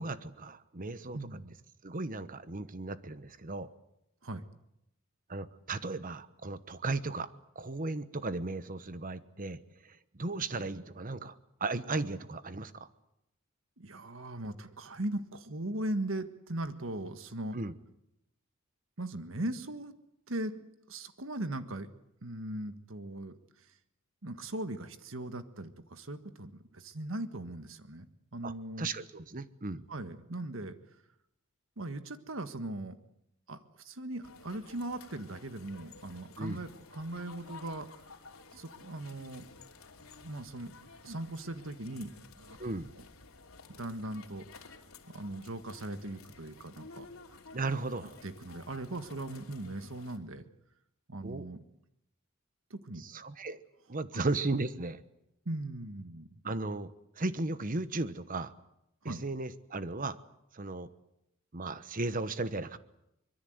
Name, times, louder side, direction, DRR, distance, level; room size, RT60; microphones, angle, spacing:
voice 1, 0.0-1.2 1.8-3.7 5.3-7.3 7.5-9.6 10.1-11.3 11.6-12.9 17.5-17.7 28.4-28.5 28.8-29.9 36.4-36.6 42.6-42.9 47.5-48.1 51.2-51.5 53.0-53.6 53.9-55.0 56.4-56.9 57.2-58.5 59.0-60.2 60.5-60.9 61.5-62.8, right 3 dB, 40° right, 13 dB, 1.1 m, -35 dB
voice 2, 1.1-1.5 4.2-4.4 13.8-17.6 19.0-19.9 20.3-21.9 22.2-23.3 24.2-28.1 28.3-28.9 29.9-30.7 31.8-33.0 33.5-37.9 38.5-39.4 40.2-40.7 41.0-42.1 42.4-42.6 43.8-44.4 45.1-47.1 48.2-50.4 51.1-51.6 52.7-53.0 54.1-54.2 55.4-56.3 59.0-59.2, right 1 dB, 65° right, 10 dB, 1.6 m, -39 dB
sound 1, 34.2-50.2, left 4 dB, 85° left, 3.0 m, -53 dB
24.5 x 22.0 x 8.0 m, 0.83 s
head